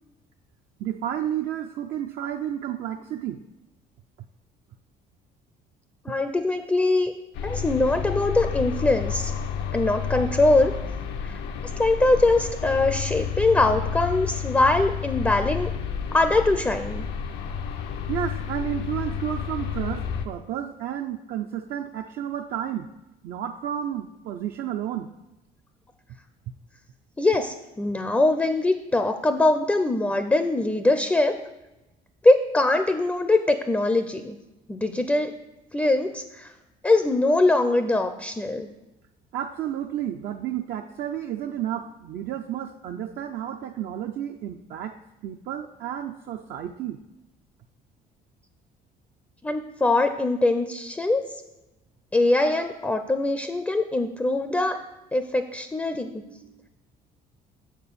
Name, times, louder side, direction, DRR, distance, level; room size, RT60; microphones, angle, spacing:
voice 1, 0.8-3.4 18.1-22.9 23.2-25.1 39.3-45.0 45.2-47.0 56.2-56.7, right 10 dB, 65° right, 4 dB, 0.4 m, -31 dB
voice 2, 6.0-7.1 7.4-9.3 9.7-10.7 11.2-11.4 11.8-15.7 16.1-17.1 27.2-31.3 32.2-34.4 34.7-35.3 35.7-36.5 36.8-38.7 49.4-51.2 52.1-54.8 55.1-56.1, left 2 dB, 10° left, 8 dB, 0.4 m, -22 dB
sound 1, 7.3-20.3, left 7 dB, 85° left, 0.7 m, -30 dB
6.8 x 4.4 x 6.7 m, 0.98 s
cardioid pair, 110°, 17 cm